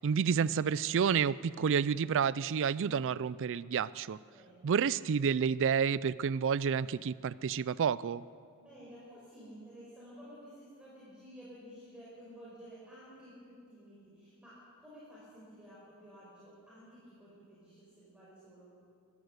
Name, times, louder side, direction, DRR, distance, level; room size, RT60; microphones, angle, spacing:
voice 1, 0.0-4.2 4.6-8.2, right 7 dB, 60° right, 19 dB, 0.4 m, -30 dB
voice 2, 4.3-4.7 8.6-18.7, equal, 5° right, -8 dB, 5.2 m, -53 dB
22.5 x 14.5 x 8.1 m, 2.5 s
head